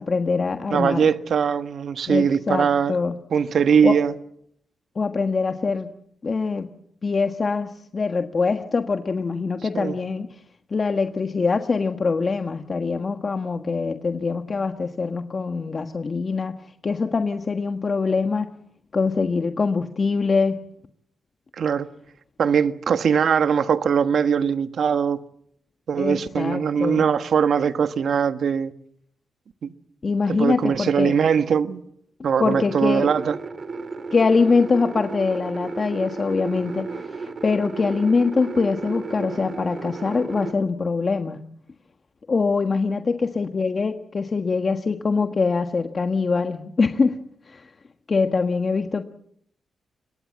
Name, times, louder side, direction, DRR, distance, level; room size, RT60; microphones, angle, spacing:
voice 1, 0.0-1.1 2.1-3.1 3.8-4.0 4.9-5.9 6.2-6.7 7.0-10.3 10.7-16.5 16.8-18.5 18.9-20.6 26.0-27.1 30.0-31.1 32.4-33.1 34.1-36.9 37.2-41.4 42.3-47.2 47.5-47.7 48.1-49.0, left 4 dB, 45° left, 1.4 m, -23 dB
voice 2, 0.7-3.0 3.3-4.1 9.7-9.9 21.6-21.9 22.4-25.2 25.9-28.7 29.6-29.7 30.3-31.8 32.2-33.4, right 7 dB, 70° right, 1.4 m, -21 dB
sound 1, 32.6-40.5, right 4 dB, 50° right, 3.7 m, -34 dB
26.0 x 22.0 x 7.5 m
cardioid pair, 60°, 0 cm